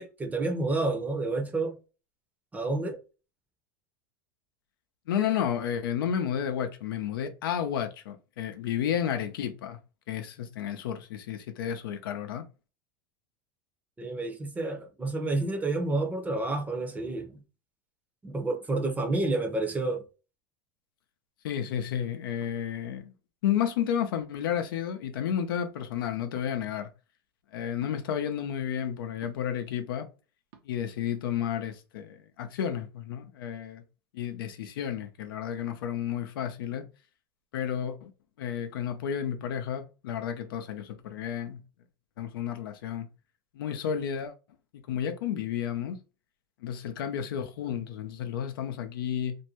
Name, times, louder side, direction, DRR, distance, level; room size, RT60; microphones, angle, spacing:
voice 1, 0.0-1.8 2.5-3.0 14.0-17.4 18.2-20.1, right 2 dB, 15° right, 0.7 m, -29 dB
voice 2, 5.1-9.8 10.1-12.4 21.4-23.1 23.4-26.9 27.5-30.1 30.6-33.8 34.1-36.8 37.5-38.1 38.4-41.6 42.2-43.1 43.5-44.3 44.9-46.0 46.6-49.4, left 9 dB, 85° left, 0.6 m, -32 dB
sound 1, 22.4-22.6 24.1-24.5 26.3-26.5 27.8-28.0 29.2-29.5 30.5-30.7, right 6 dB, 65° right, 0.8 m, -54 dB
2.6 x 2.1 x 2.8 m
supercardioid pair, 115°, 11 cm